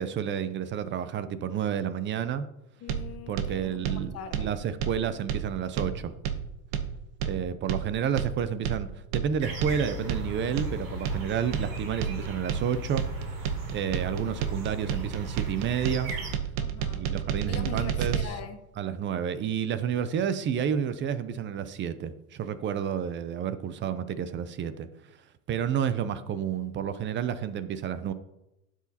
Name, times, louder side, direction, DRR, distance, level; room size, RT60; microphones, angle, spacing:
voice 1, 0.0-2.5 3.3-6.1 7.2-8.9 9.1-13.1 13.7-16.1 17.0-18.1 18.8-24.9 25.5-28.1, right 8 dB, 25° right, 13 dB, 0.5 m, -30 dB
voice 2, 2.8-4.5 16.6-17.1 17.4-18.6, left 7 dB, 35° left, 8 dB, 1.1 m, -41 dB
sound 1, 2.9-18.2, right 8 dB, 70° right, 1.1 m, -31 dB
sound 2, 9.4-16.3, equal, 45° right, 3.0 m, -38 dB
11.5 x 7.4 x 2.8 m, 0.89 s
supercardioid pair, 120°, 45 cm